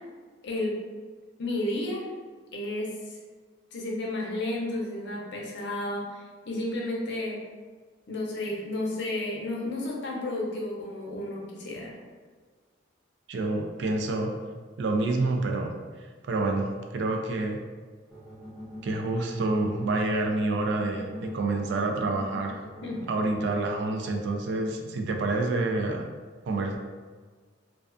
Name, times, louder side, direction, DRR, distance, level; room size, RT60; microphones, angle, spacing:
voice 1, 0.4-0.8 1.4-2.1 2.5-3.2 3.7-7.4 8.1-12.0 22.8-23.0, left 1 dB, 60° left, -2 dB, 0.5 m, -32 dB
voice 2, 13.3-14.3 14.8-15.7 16.0-17.6 18.8-22.6 23.1-26.1 26.5-26.8, right 2 dB, 60° right, 2 dB, 0.3 m, -28 dB
sound 1, 18.1-23.6, left 1 dB, 5° left, 0.5 m, -41 dB
2.3 x 2.3 x 2.4 m, 1.5 s
head